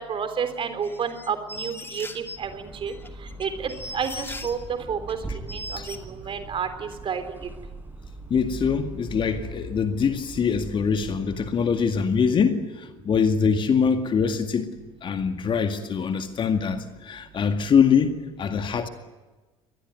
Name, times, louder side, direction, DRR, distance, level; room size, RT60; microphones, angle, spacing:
voice 1, 0.0-2.9 3.4-7.5, right 6 dB, 35° right, 3.7 m, -30 dB
sound 1, 0.8-2.4 2.9-4.6 5.1-5.2 5.5-6.0, left 1 dB, 15° left, 2.5 m, -38 dB
sound 2, 2.2-11.7, right 3 dB, 10° right, 5.2 m, -41 dB
voice 2, 8.3-14.7 15.0-18.9, left 6 dB, 30° left, 2.1 m, -23 dB
24.0 x 20.0 x 9.5 m
figure-of-eight pair, 65°, 16 cm